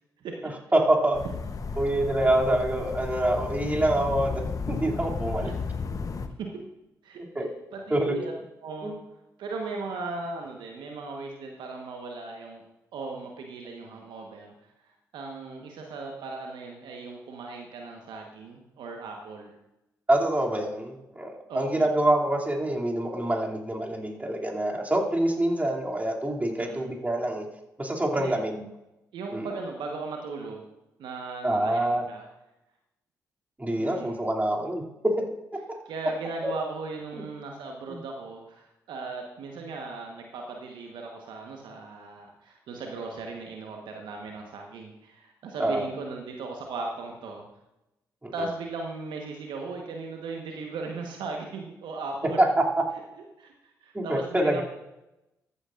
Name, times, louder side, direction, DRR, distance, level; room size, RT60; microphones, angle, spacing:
voice 1, 0.4-1.2 1.8-4.4 4.7-5.5 7.3-7.5 7.9-8.1 8.8-8.9 20.1-27.4 27.8-28.7 29.3-29.5 31.4-32.0 33.6-34.8 35.2-35.3 35.5-35.8 36.4-36.5 37.1-37.2 37.9-38.0 45.6-45.9 48.2-48.3 52.4-52.5 53.9-54.6, right 1 dB, 20° right, -1 dB, 2.7 m, -26 dB
sound 1, 1.1-6.3, left 4 dB, 45° left, 0.9 m, -33 dB
voice 2, 7.0-8.3 8.6-8.9 9.4-12.6 12.9-19.5 21.5-21.9 26.6-26.9 28.1-28.4 29.1-30.7 31.0-32.3 33.8-34.2 35.9-47.4 48.3-52.4 53.4-54.6, right 3 dB, 70° right, 1 dB, 1.2 m, -37 dB
14.5 x 9.7 x 2.5 m, 0.93 s
hypercardioid pair, 40°, 8 cm